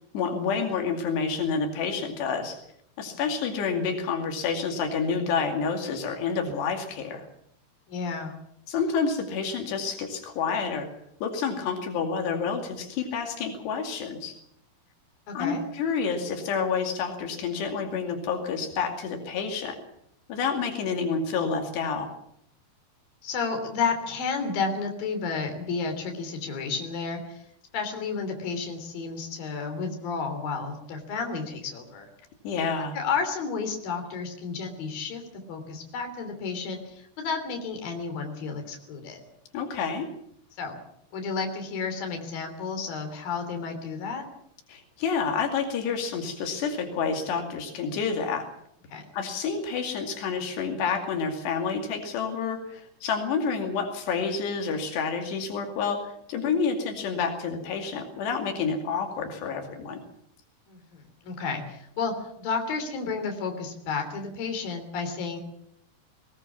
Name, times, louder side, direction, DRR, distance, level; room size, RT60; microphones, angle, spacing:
voice 1, 0.1-2.6 3.0-7.3 8.7-10.9 11.2-14.3 15.3-19.8 20.3-22.1 32.4-33.0 39.5-40.1 44.7-48.5 49.1-60.0, left 5 dB, 90° left, 3 dB, 4.6 m, -29 dB
voice 2, 7.9-8.4 15.3-15.6 23.2-27.4 27.7-32.1 32.9-39.2 40.6-40.8 41.1-44.2 48.9-49.1 60.7-65.4, left 5 dB, 60° left, 5 dB, 4.9 m, -32 dB
20.5 x 20.0 x 7.3 m, 0.74 s
omnidirectional pair, 4.7 m